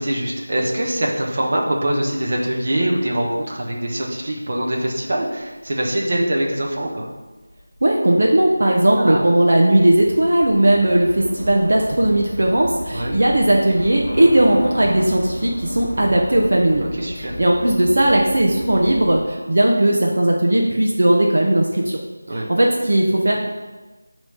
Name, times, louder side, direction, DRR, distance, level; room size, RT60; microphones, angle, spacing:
voice 1, 0.0-7.1 9.0-9.2 12.9-13.2 16.9-17.4 22.3-22.5, right 1 dB, 35° right, -2 dB, 1.1 m, -23 dB
Train / Subway metro underground, 6.7-19.2, equal, 20° left, 1.3 m, -33 dB
voice 2, 7.8-16.9 17.2-22.0 22.3-23.4, right 1 dB, 55° right, -1 dB, 0.9 m, -17 dB
9.6 x 3.2 x 5.0 m, 1.2 s
figure-of-eight pair, 175°, 0 cm